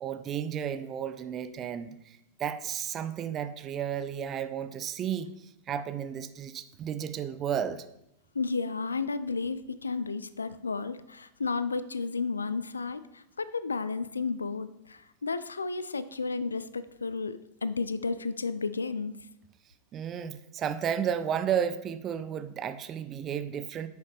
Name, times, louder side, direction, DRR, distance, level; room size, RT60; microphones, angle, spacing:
voice 1, 0.0-7.8 19.9-23.9, right 8 dB, 30° right, 11 dB, 0.6 m, -33 dB
voice 2, 8.3-19.2, left 4 dB, 75° left, 15 dB, 0.4 m, -32 dB
9.7 x 6.4 x 3.5 m, 0.83 s
figure-of-eight pair, 90°, 0 cm